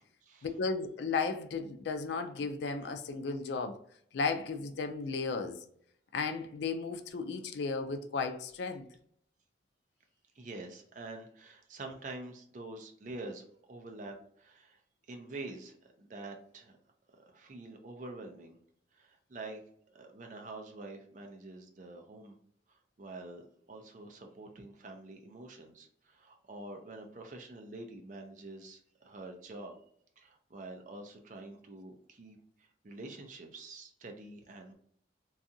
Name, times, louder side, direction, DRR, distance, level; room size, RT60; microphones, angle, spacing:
voice 1, 0.4-3.8 4.1-5.6 6.1-8.9, left 4 dB, 70° left, 0.4 m, -34 dB
voice 2, 10.3-14.8 15.1-16.8 17.3-18.6 18.9-19.6 19.9-22.4 22.7-23.4 23.7-29.8 30.2-34.7, right 2 dB, 45° right, 0.5 m, -46 dB
2.7 x 2.3 x 2.6 m
head